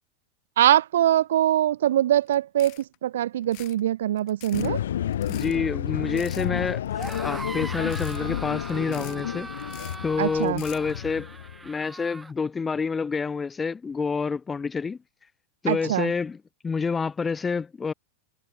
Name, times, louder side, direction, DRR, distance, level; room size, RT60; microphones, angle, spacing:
voice 1, 0.6-4.8 10.2-10.6 15.7-16.1, right 12 dB, 60° right, 2.5 m, -23 dB
sound 1, 2.3-2.4 2.6-3.0 3.4-3.8 4.2-4.7 5.1-5.6 6.2-6.5 6.9-7.4 7.8-8.2 8.7-9.2 9.6-10.0 10.4-10.9, left 33 dB, 45° left, 5.8 m, -45 dB
sound 2, 4.5-11.7, left 11 dB, 60° left, 1.6 m, -31 dB
voice 2, 5.3-6.8 7.1-9.5 10.0-11.3 11.6-15.0 15.6-16.4 16.6-17.9, left 5 dB, 15° left, 3.2 m, -28 dB
sound 3, 6.9-12.3, right 3 dB, 10° right, 3.6 m, -40 dB
figure-of-eight pair, 90°, 0 cm